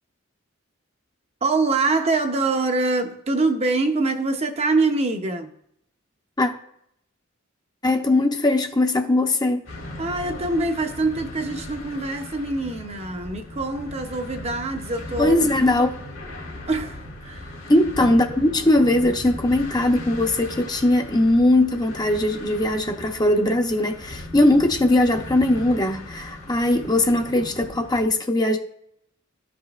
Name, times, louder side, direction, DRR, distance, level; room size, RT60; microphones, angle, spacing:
voice 1, 1.4-5.5 10.0-15.4 16.7-17.6, right 3 dB, 30° right, 0.7 m, -24 dB
voice 2, 7.8-9.6 15.2-16.0 17.7-28.6, left 1 dB, 20° left, 0.7 m, -20 dB
sound 1, 9.6-28.1, left 1 dB, 75° left, 2.3 m, -38 dB
13.0 x 5.0 x 2.4 m
head